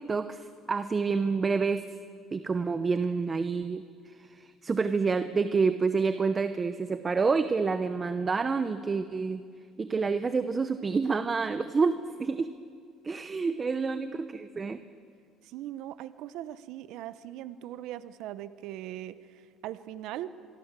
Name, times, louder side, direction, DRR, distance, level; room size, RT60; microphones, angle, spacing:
voice 1, 0.0-1.8 2.3-9.4 9.8-12.5 13.0-14.8, right 4 dB, 25° right, 11 dB, 0.9 m, -28 dB
voice 2, 15.5-20.3, right 13 dB, 75° right, 14 dB, 1.0 m, -40 dB
24.5 x 23.5 x 7.6 m, 2.2 s
cardioid pair, 120°, 0 cm